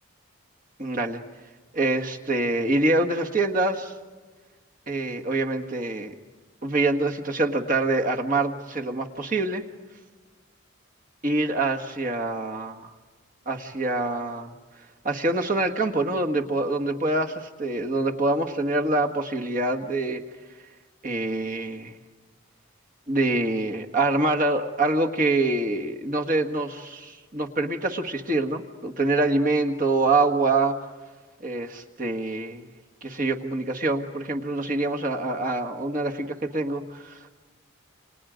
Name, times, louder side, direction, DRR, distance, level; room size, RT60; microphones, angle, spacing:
voice 1, 0.8-1.2 1.7-3.9 4.9-6.1 6.6-9.6 11.2-12.9 13.4-14.5 15.0-20.2 21.0-21.9 23.1-30.7 31.4-32.7 33.0-37.2, right 2 dB, 40° right, 3 dB, 1.7 m, -25 dB
29.0 x 27.0 x 5.2 m, 1.4 s
head